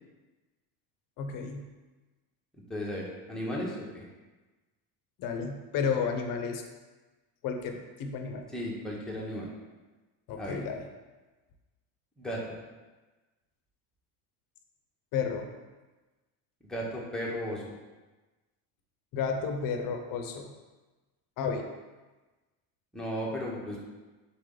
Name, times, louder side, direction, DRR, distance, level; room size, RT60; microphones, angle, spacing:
voice 1, 1.2-1.7 5.2-6.6 7.4-8.5 10.3-10.9 15.1-15.5 19.1-20.5 21.4-21.7, left 6 dB, 45° left, 5 dB, 0.7 m, -32 dB
voice 2, 2.7-4.1 8.5-9.5 10.4-10.6 12.2-12.5 16.6-17.7 22.9-23.9, equal, ahead, -4 dB, 0.8 m, -35 dB
4.1 x 3.3 x 3.8 m, 1.2 s
supercardioid pair, 120°, 48 cm